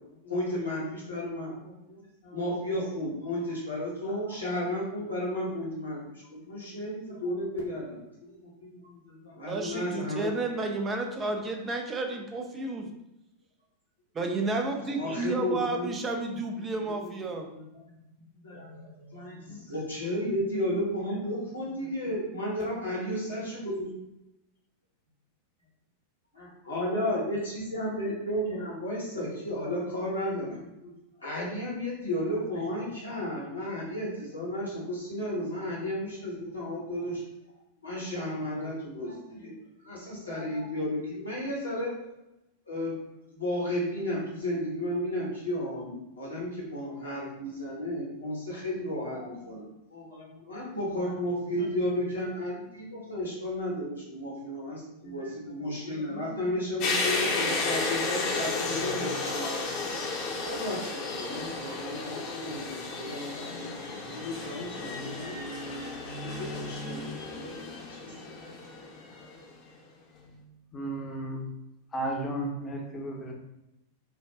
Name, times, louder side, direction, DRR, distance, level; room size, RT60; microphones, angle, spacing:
voice 1, 0.2-10.3 14.8-15.9 16.8-18.0 18.3-23.9 26.3-30.9 31.2-37.2 37.8-39.5 39.8-42.1 42.7-43.0 43.3-49.6 49.9-59.6 60.3-65.3 66.3-67.2 67.9-68.1, left 1 dB, 80° left, -5 dB, 1.3 m, -33 dB
voice 2, 9.5-12.9 14.1-17.5, right 3 dB, 20° right, 3 dB, 0.6 m, -31 dB
sound 1, 56.8-69.5, left 3 dB, 45° left, 0.9 m, -33 dB
voice 3, 70.7-71.4 71.9-73.3, right 1 dB, 15° left, -1 dB, 0.9 m, -34 dB
5.1 x 2.3 x 2.4 m, 0.90 s
figure-of-eight pair, 90°, 0 cm